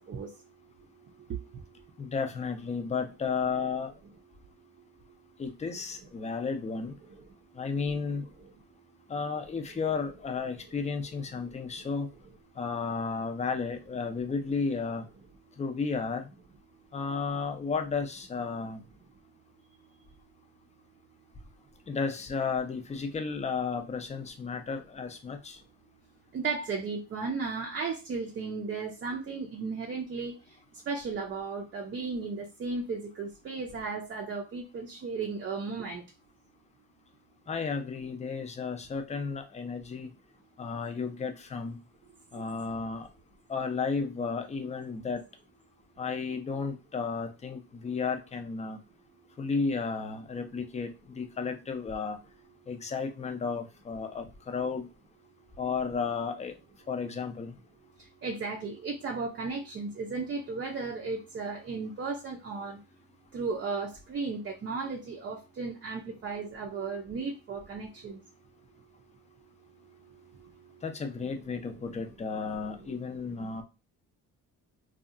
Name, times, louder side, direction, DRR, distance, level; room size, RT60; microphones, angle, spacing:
voice 1, 2.0-3.9 5.4-6.9 7.5-8.3 9.1-12.1 12.6-15.0 15.6-16.3 16.9-18.8 21.9-25.6 37.5-40.1 40.6-41.8 42.3-43.1 43.5-45.2 46.0-48.8 49.4-52.2 52.7-54.9 55.6-56.5 56.9-57.6 70.8-73.6, left 5 dB, 20° left, 5 dB, 0.4 m, -33 dB
voice 2, 26.3-30.3 30.9-36.0 58.2-62.8 63.3-68.2 72.5-73.0 73.2-73.6, right 4 dB, 35° right, 0 dB, 0.5 m, -35 dB
2.7 x 2.3 x 2.4 m, 0.28 s
cardioid pair, 110°, 34 cm